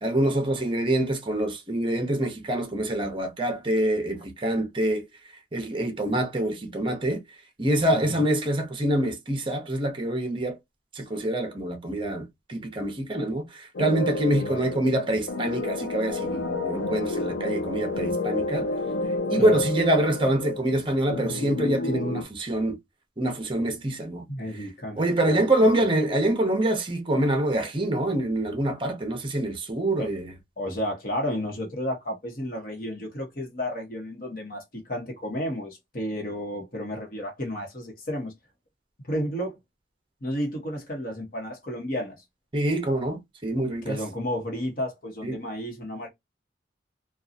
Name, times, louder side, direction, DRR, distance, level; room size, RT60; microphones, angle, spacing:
voice 1, 0.0-5.1 5.5-7.2 7.6-10.6 10.9-18.7 19.3-22.8 23.2-24.3 25.0-30.3 42.5-44.0 45.2-45.4, right 1 dB, 30° right, 0.7 m, -25 dB
voice 2, 7.9-8.2 14.4-14.6 19.4-19.6 24.3-25.9 30.0-30.1 30.6-38.3 39.1-39.6 40.2-42.2 43.8-46.1, equal, 50° left, 1.1 m, -32 dB
sound 1, 13.7-22.2, left 2 dB, 85° left, 0.6 m, -30 dB
2.7 x 2.3 x 2.4 m
head